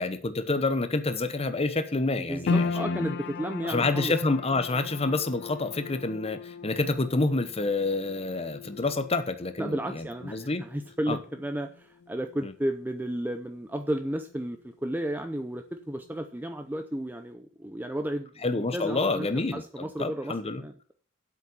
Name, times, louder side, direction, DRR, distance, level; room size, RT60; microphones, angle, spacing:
voice 1, 0.0-3.1 3.6-10.6 11.1-11.2 12.4-12.5 18.4-20.6, left 3 dB, 30° left, 1.0 m, -28 dB
voice 2, 2.2-4.1 9.6-19.3 19.5-20.9, right 1 dB, 10° right, 0.6 m, -33 dB
sound 1, 2.5-14.9 15.1-16.1 16.5-16.6, left 4 dB, 55° left, 0.4 m, -37 dB
8.2 x 7.3 x 7.0 m
head